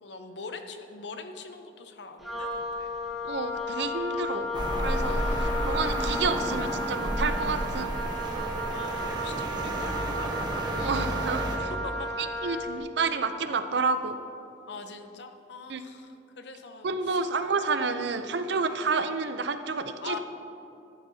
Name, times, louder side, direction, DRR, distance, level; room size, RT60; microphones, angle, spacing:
voice 1, 0.0-2.9 5.2-5.5 8.7-10.4 11.8-12.1 14.7-17.2 20.0-20.2, left 4 dB, 70° left, 7 dB, 0.7 m, -42 dB
Wind instrument woodwind instrument, 2.2-12.8, left 1 dB, ahead, 1.3 m, -33 dB
voice 2, 3.2-4.5 4.8-7.9 10.8-11.7 12.4-14.2 15.7-15.8 16.8-20.2, right 4 dB, 65° right, 9 dB, 0.5 m, -29 dB
sound 1, 4.5-11.6, right 1 dB, 25° right, 1.0 m, -31 dB
13.5 x 11.0 x 2.7 m, 2.7 s
head